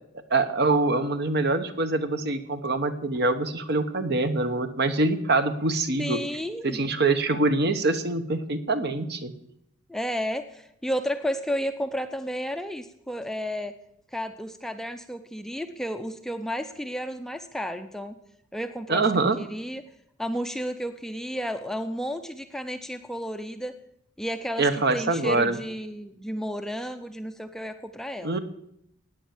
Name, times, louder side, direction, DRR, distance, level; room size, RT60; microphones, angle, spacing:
voice 1, 0.3-6.2 6.6-9.3 18.9-19.4 24.6-25.6 28.2-28.4, right 3 dB, 50° right, 10 dB, 1.1 m, -24 dB
voice 2, 6.0-6.8 9.9-13.7 14.1-18.1 18.5-19.8 20.2-23.7 24.2-28.4, equal, ahead, 8 dB, 0.6 m, -32 dB
17.0 x 9.2 x 7.2 m, 0.76 s
head